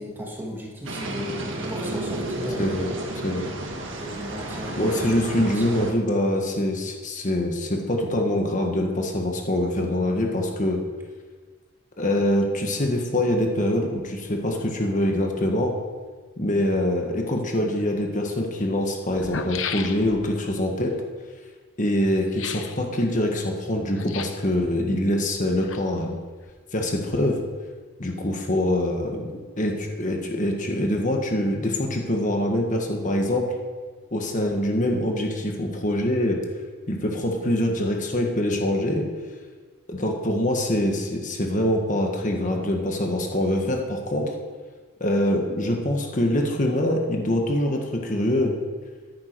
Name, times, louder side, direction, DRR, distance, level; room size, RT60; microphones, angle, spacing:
voice 1, 0.0-2.9 3.9-5.9, equal, 10° right, -2 dB, 1.9 m, -35 dB
sound 1, 0.9-5.9, right 1 dB, 60° right, 1.8 m, -32 dB
voice 2, 2.6-2.9 3.2-3.5 4.8-10.8 12.0-15.7 16.4-20.9 21.8-26.2 26.7-27.4 28.0-33.5 34.1-36.4 36.9-39.1 39.9-44.3 45.0-48.5, left 1 dB, 35° left, 1 dB, 1.5 m, -24 dB
sound 2, 17.8-17.9 18.8-18.9 19.1-20.3 22.3-22.8 23.9-24.5 25.3-26.1 26.4-26.5, left 6 dB, 65° left, 0.8 m, -34 dB
14.5 x 10.5 x 4.6 m, 1.5 s
head